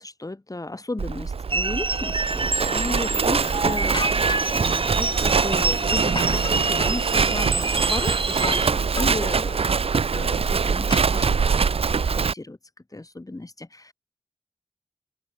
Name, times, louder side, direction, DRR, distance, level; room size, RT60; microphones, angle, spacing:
voice 1, 0.0-4.1 4.5-9.6 9.9-11.7 12.1-12.6 12.9-13.9, left 2 dB, 35° left, 2.0 m, -34 dB
Livestock farm animals working animals, 1.0-12.3, right 5 dB, 90° right, 0.5 m, -23 dB
sound 1, 1.5-8.7, right 3 dB, 60° right, 1.8 m, -27 dB
sound 2, 3.9-4.6 6.2-7.0 8.4-8.7 9.0-9.6 10.9-11.7, left 3 dB, 55° left, 2.8 m, -34 dB
wide cardioid pair, 55°, 10 cm